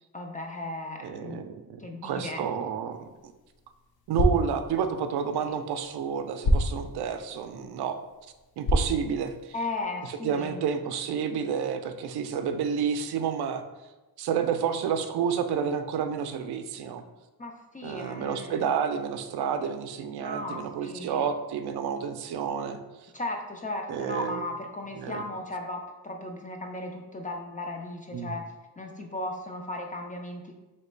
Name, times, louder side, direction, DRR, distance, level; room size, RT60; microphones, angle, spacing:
voice 1, 0.1-1.4 1.8-2.5 5.4-5.5 9.5-10.6 17.4-18.7 20.2-21.2 23.1-28.5 28.8-30.6, left 2 dB, 20° left, 2 dB, 0.3 m, -36 dB
voice 2, 1.0-3.0 4.1-8.0 8.6-9.3 10.2-13.6 14.2-17.0 17.8-22.8 23.9-24.4 25.0-25.2 28.1-28.3, right 7 dB, 75° right, 8 dB, 0.5 m, -30 dB
sound 1, 2.9-9.8, equal, 70° left, 0.6 m, -31 dB
3.2 x 2.9 x 4.4 m, 1.1 s
wide cardioid pair, 145°, 39 cm